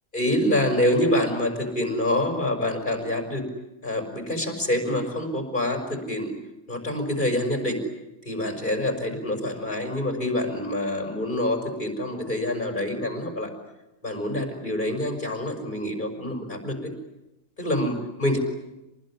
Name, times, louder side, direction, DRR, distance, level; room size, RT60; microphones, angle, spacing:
voice 1, 0.1-3.5 3.8-6.3 6.7-7.8 8.2-13.5 14.0-16.8 17.6-18.4, left 1 dB, 35° left, 4 dB, 5.6 m, -26 dB
28.0 x 20.5 x 9.8 m, 0.95 s
omnidirectional pair, 1.5 m